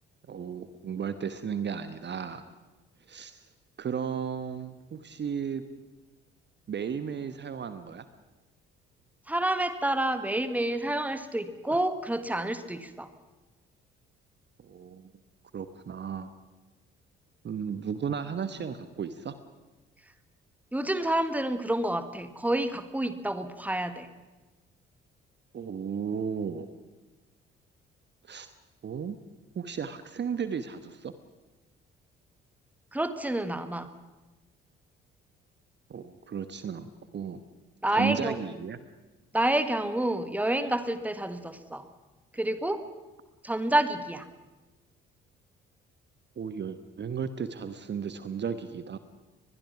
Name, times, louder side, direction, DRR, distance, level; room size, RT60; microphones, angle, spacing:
voice 1, 0.3-2.4 3.1-3.4 3.8-5.6 6.7-8.1 14.6-15.1 15.5-16.3 17.4-19.3 25.5-26.7 28.3-28.5 28.8-29.2 29.5-31.1 35.9-37.4 37.9-38.8 46.4-49.0, right 7 dB, 35° right, 11 dB, 1.2 m, -34 dB
voice 2, 9.3-13.1 20.7-24.1 32.9-33.9 37.8-38.4 39.3-41.9 42.3-42.8 43.4-44.3, right 1 dB, 5° right, 10 dB, 1.6 m, -28 dB
23.5 x 21.0 x 5.9 m, 1.2 s
figure-of-eight pair, 45°, 29 cm